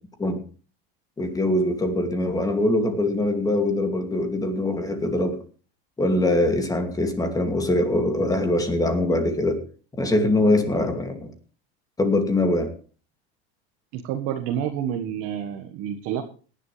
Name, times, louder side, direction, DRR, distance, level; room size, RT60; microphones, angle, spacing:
voice 1, 1.2-5.4 6.0-9.6 10.0-11.3 12.0-12.7, left 1 dB, 10° left, 6 dB, 2.5 m, -23 dB
voice 2, 13.9-16.2, right 9 dB, 50° right, 5 dB, 1.7 m, -29 dB
18.5 x 11.0 x 3.4 m, 0.39 s
supercardioid pair, 140°, 31 cm